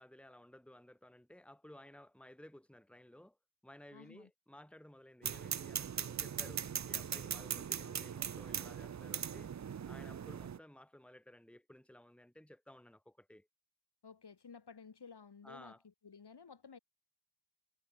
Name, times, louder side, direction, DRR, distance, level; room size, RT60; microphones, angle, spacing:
voice 1, 0.0-3.4 3.6-9.5 9.9-13.5 15.4-15.8, left 1 dB, ahead, 2.7 m, -57 dB
voice 2, 3.9-4.3 14.0-15.7 16.0-16.8, left 5 dB, 55° left, 6.9 m, -54 dB
sound 1, 5.2-10.6, right 8 dB, 35° right, 0.7 m, -40 dB
cardioid pair, 50°, 46 cm